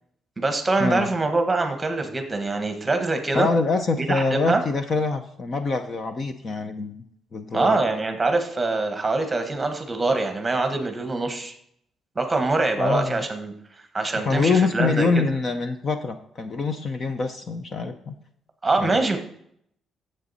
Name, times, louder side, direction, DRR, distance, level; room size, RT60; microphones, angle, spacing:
voice 1, 0.4-3.5 4.0-4.6 7.5-11.5 12.1-13.5 13.9-15.2 18.6-19.2, right 3 dB, 15° right, 6 dB, 1.3 m, -24 dB
voice 2, 3.3-7.0 7.3-7.8 12.8-13.2 14.2-18.1 18.8-19.2, left 4 dB, 30° left, 8 dB, 0.7 m, -25 dB
10.0 x 7.7 x 4.1 m, 0.70 s
cardioid pair, 170°, 0 cm